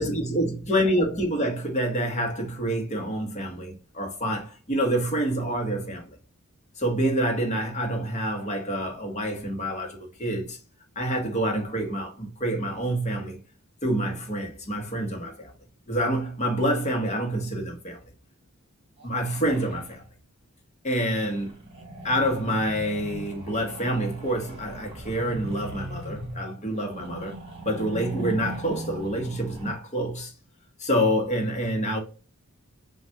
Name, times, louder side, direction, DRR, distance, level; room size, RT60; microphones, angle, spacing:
voice 1, 0.0-6.2 6.8-10.6 11.0-13.4 13.8-15.5 15.9-18.0 19.0-20.0 20.8-21.5 22.0-27.4 27.6-30.3 30.8-32.0, equal, 35° left, 1.2 m, -27 dB
sound 1, 19.0-20.1 21.1-29.7, right 1 dB, 25° right, 1.4 m, -39 dB
5.9 x 2.4 x 3.4 m
head